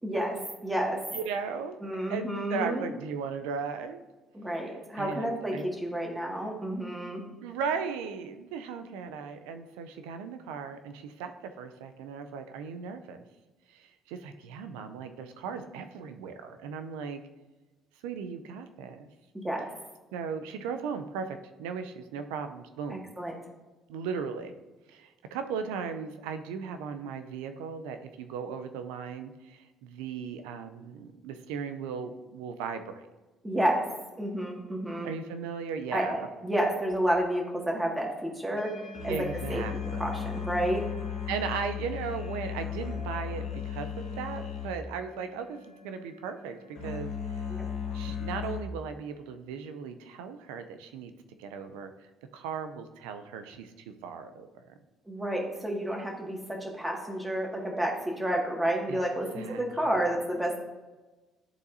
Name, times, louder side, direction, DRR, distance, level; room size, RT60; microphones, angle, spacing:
voice 1, 0.0-1.0 1.8-2.9 4.3-7.2 19.3-19.7 23.2-23.3 33.4-33.9 34.2-35.1 35.9-38.7 39.0-39.6 40.0-40.9 47.5-47.6 55.1-60.6, right 1 dB, 10° right, 0 dB, 1.9 m, -30 dB
voice 2, 1.1-1.8 2.1-4.0 4.6-5.7 7.4-13.2 13.7-17.2 18.0-19.1 20.1-23.0 23.9-24.5 24.9-33.1 35.0-36.3 39.1-40.0 41.3-47.6 47.9-51.1 51.4-53.7 54.0-54.8 58.9-59.0 59.3-59.6, right 6 dB, 85° right, 8 dB, 0.5 m, -37 dB
sound 1, 36.9-37.0 38.6-48.6, left 7 dB, 85° left, 1.6 m, -36 dB
11.0 x 4.0 x 2.7 m, 1.2 s
supercardioid pair, 65°, 0 cm